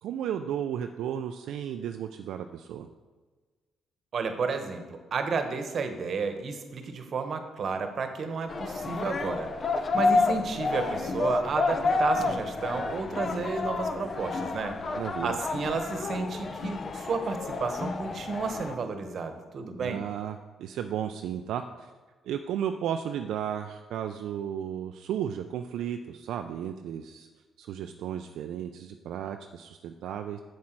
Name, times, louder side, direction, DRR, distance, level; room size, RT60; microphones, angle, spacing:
voice 1, 0.0-2.9 14.9-15.4 19.8-21.9 22.2-27.3 27.6-30.4, right 9 dB, 80° right, 6 dB, 0.4 m, -34 dB
voice 2, 4.1-9.5 9.9-14.8 15.2-20.0, right 4 dB, 55° right, 7 dB, 1.0 m, -32 dB
sound 1, 8.5-18.7, left 3 dB, 40° left, 0.6 m, -29 dB
7.4 x 7.4 x 4.5 m, 1.4 s
cardioid pair, 90°, 0 cm